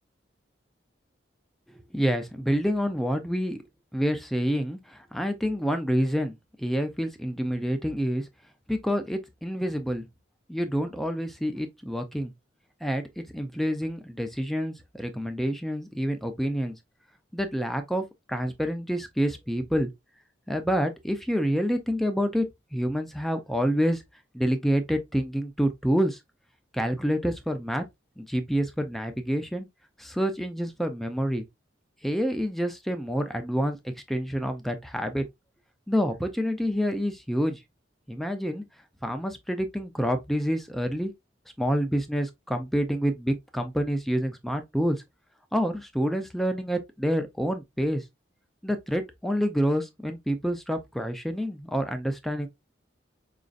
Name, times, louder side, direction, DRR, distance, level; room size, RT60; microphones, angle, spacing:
voice 1, 1.9-3.6 3.9-8.3 8.7-10.1 10.5-12.3 12.8-16.8 17.3-19.9 20.5-22.5 22.7-24.0 24.3-26.2 26.7-27.8 28.2-29.7 30.0-31.4 32.0-35.2 35.9-37.6 38.1-38.6 39.0-41.1 41.6-45.0 45.5-48.0 48.6-52.5, equal, ahead, 0.4 m, -28 dB
5.0 x 2.5 x 2.4 m
head